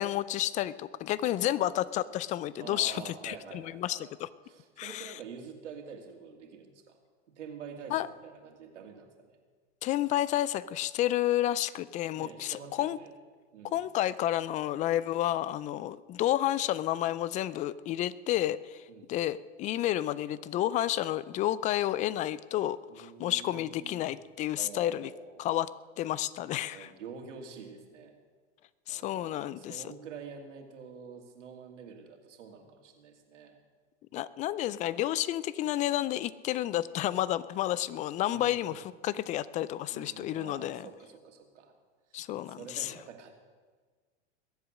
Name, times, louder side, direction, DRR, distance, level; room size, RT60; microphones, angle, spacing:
voice 1, 0.0-4.3 4.8-5.1 7.9-8.1 9.8-13.0 13.6-25.1 25.4-25.7 26.0-26.9 28.9-29.8 34.1-40.9 42.1-42.9, left 13 dB, 20° left, 18 dB, 0.3 m, -31 dB
voice 2, 1.3-1.9 2.6-4.1 4.4-7.0 7.3-9.4 12.1-13.1 13.5-13.8 18.9-19.1 22.9-24.1 24.6-25.4 26.6-28.1 28.9-33.6 38.3-38.8 39.9-41.7 42.1-43.4, right 6 dB, 80° right, 3 dB, 2.5 m, -47 dB
21.5 x 8.1 x 6.4 m, 1.5 s
hypercardioid pair, 110°, 35 cm